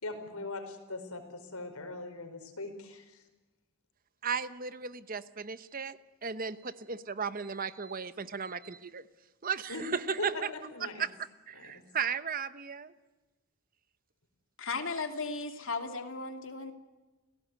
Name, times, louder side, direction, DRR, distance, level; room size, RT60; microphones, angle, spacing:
voice 1, 0.0-3.2 9.7-9.9 10.2-11.0 11.5-11.7, left 2 dB, 80° left, 7 dB, 5.1 m, -40 dB
voice 2, 4.2-9.0 9.4-10.3 11.0-11.1 11.5-12.9, right 6 dB, 40° right, 13 dB, 1.0 m, -35 dB
voice 3, 14.6-16.7, left 4 dB, 60° left, 5 dB, 2.9 m, -36 dB
30.0 x 17.5 x 9.6 m, 1.2 s
head